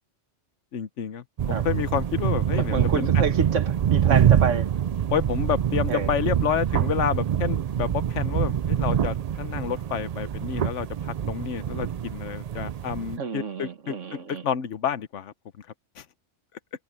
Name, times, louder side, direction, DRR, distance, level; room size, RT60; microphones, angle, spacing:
voice 1, 0.7-3.2 5.1-15.3 16.0-16.1, left 8 dB, 75° left, 1.2 m, -29 dB
sound 1, 1.4-13.2, right 9 dB, 65° right, 0.4 m, -25 dB
voice 2, 2.5-4.7 5.9-6.1 13.2-14.4, right 5 dB, 80° right, 1.8 m, -29 dB
omnidirectional pair, 1.2 m